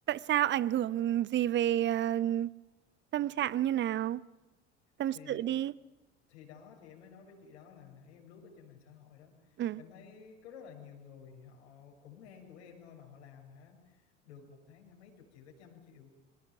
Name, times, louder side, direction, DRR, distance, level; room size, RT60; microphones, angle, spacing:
voice 1, 0.1-2.5 3.1-4.2 5.0-5.7 9.6-9.8, right 12 dB, 30° right, 0.8 m, -30 dB
voice 2, 5.1-5.6 6.3-9.5 9.8-16.1, left 7 dB, 60° left, 6.6 m, -53 dB
26.5 x 18.5 x 9.3 m
figure-of-eight pair, 70°, 36 cm